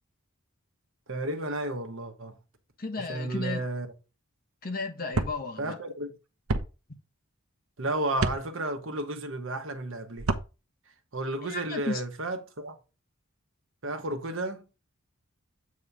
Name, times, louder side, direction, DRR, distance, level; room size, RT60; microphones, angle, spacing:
voice 1, 1.1-2.4 3.0-3.9 5.6-6.2 7.8-10.3 11.1-12.8 13.8-14.6, right 2 dB, 65° right, 1.2 m, -32 dB
voice 2, 2.8-3.6 4.6-5.8 11.4-12.0, left 3 dB, 45° left, 1.3 m, -34 dB
sound 1, 5.1-5.4 6.5-6.7 8.2-8.4 10.2-10.5, right 3 dB, 85° right, 0.9 m, -27 dB
8.4 x 3.2 x 5.4 m
head